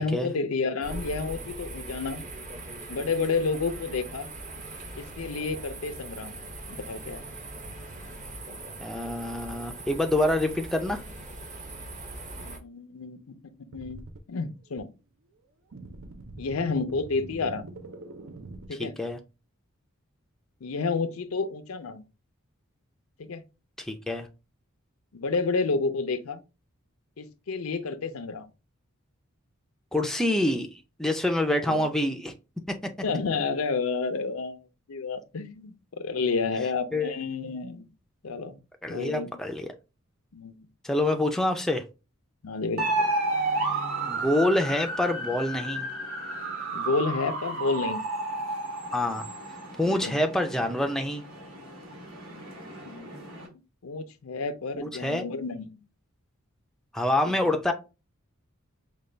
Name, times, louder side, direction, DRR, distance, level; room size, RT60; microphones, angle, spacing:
voice 1, 0.0-2.3 2.9-4.3 5.0-6.4 6.7-7.2 12.4-13.3 13.7-14.0 14.3-14.9 16.4-17.7 18.7-18.9 20.6-22.0 23.2-23.4 25.1-26.4 27.2-28.5 31.6-32.2 33.0-37.9 38.2-38.6 38.9-39.3 40.3-40.7 42.4-43.1 46.7-48.0 49.8-50.2 52.8-53.1 53.8-55.7 57.2-57.3, left 4 dB, 80° left, 0.5 m, -30 dB
sound 1, 0.8-12.6, right 2 dB, 35° right, 0.8 m, -40 dB
voice 2, 8.8-11.0 18.7-19.2 23.8-24.3 29.9-32.3 32.7-32.8 36.9-37.1 38.8-39.7 40.8-41.8 44.1-45.9 48.9-49.3 49.8-51.2 54.8-55.3 56.9-57.7, left 1 dB, ahead, 0.4 m, -26 dB
sound 2, 13.7-14.2 14.8-14.9 15.7-18.7, right 2 dB, 65° right, 0.5 m, -43 dB
sound 3, 42.8-53.5, right 2 dB, 80° right, 1.9 m, -32 dB
5.1 x 2.3 x 3.2 m
head